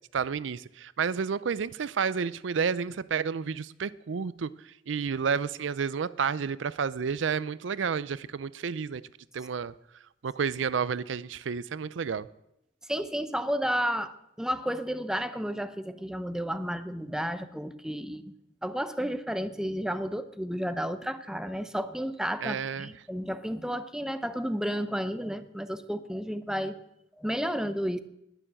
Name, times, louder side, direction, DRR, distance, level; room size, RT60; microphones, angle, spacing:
voice 1, 0.1-4.5 4.9-9.0 9.3-9.7 10.2-12.3 22.4-22.9, right 6 dB, 80° right, 18 dB, 0.5 m, -30 dB
voice 2, 12.9-18.3 18.6-26.8 27.2-28.0, equal, 5° right, 10 dB, 0.7 m, -32 dB
20.0 x 7.0 x 7.5 m, 0.83 s
head